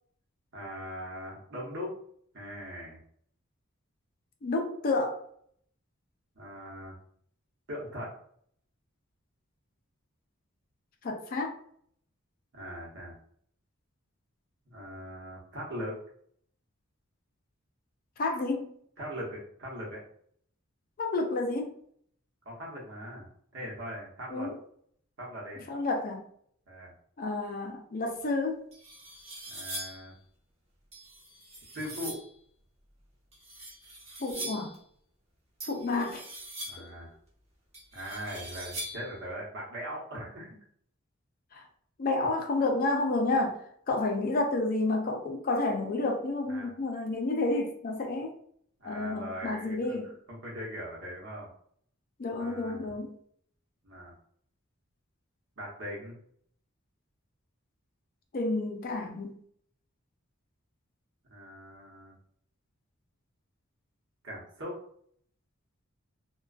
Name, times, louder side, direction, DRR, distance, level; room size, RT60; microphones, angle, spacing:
voice 1, 0.5-2.0 2.3-3.0 6.4-6.9 7.7-8.1 12.5-13.2 14.6-16.0 19.0-20.0 22.4-23.3 23.5-24.5 25.2-25.7 26.7-26.9 29.5-30.1 31.7-32.2 36.6-37.1 37.9-40.6 46.5-46.7 48.8-51.5 52.4-53.0 53.8-54.1 55.6-56.2 61.3-62.1 64.2-64.8, equal, 60° right, -3 dB, 0.9 m, -40 dB
voice 2, 4.4-5.2 11.0-11.5 18.2-18.7 21.0-21.7 24.3-24.6 25.7-26.2 27.2-28.6 34.2-34.7 35.6-36.2 36.8-36.9 41.5-41.6 42.0-48.3 48.8-50.1 52.2-53.1 58.3-59.4, left 2 dB, 45° left, 2 dB, 0.4 m, -30 dB
sound 1, 28.2-28.3 28.7-30.1 30.9-32.3 33.3-34.8 35.6-37.0 37.7-39.2, right 1 dB, 30° right, 0.8 m, -42 dB
2.4 x 2.2 x 2.3 m, 0.62 s
head